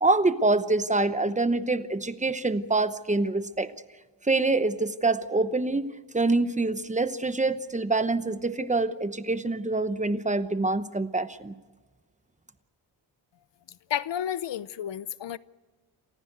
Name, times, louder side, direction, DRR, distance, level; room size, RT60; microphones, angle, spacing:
voice 1, 0.0-3.7 4.3-11.5, right 2 dB, 15° right, 0.9 m, -25 dB
voice 2, 13.9-15.4, left 10 dB, 70° left, 0.8 m, -31 dB
28.5 x 15.0 x 8.0 m
wide cardioid pair, 130°, 44 cm